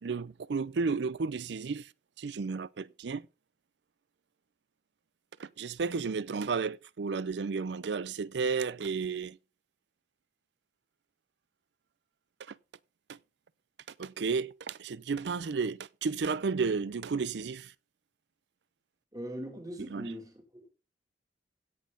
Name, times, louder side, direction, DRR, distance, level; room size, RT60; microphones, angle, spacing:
voice 1, 0.0-1.9 2.2-3.3 5.4-9.4 12.5-12.6 13.1-13.2 14.0-17.7 19.9-20.1, right 5 dB, 75° right, 0.5 m, -32 dB
voice 2, 19.1-20.7, equal, 20° right, 2.6 m, -41 dB
16.5 x 6.3 x 3.9 m
head